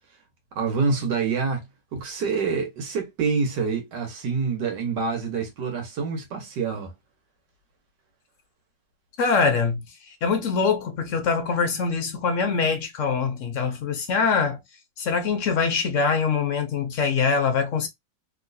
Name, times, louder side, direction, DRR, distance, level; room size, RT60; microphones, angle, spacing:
voice 1, 0.6-1.6 1.9-6.9, right 5 dB, 70° right, 1.7 m, -26 dB
voice 2, 9.2-9.8 10.1-14.6 15.0-17.9, left 5 dB, 60° left, 0.8 m, -23 dB
3.1 x 3.0 x 2.6 m
omnidirectional pair, 2.0 m